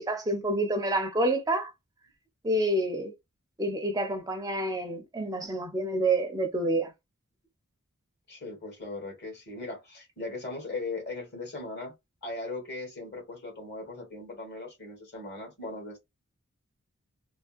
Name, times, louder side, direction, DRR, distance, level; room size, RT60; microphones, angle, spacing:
voice 1, 0.0-1.7 2.4-3.1 3.6-6.9, right 1 dB, 15° right, 0.5 m, -28 dB
voice 2, 8.3-11.9 12.2-16.0, left 3 dB, 55° left, 1.4 m, -38 dB
3.4 x 2.1 x 2.3 m
head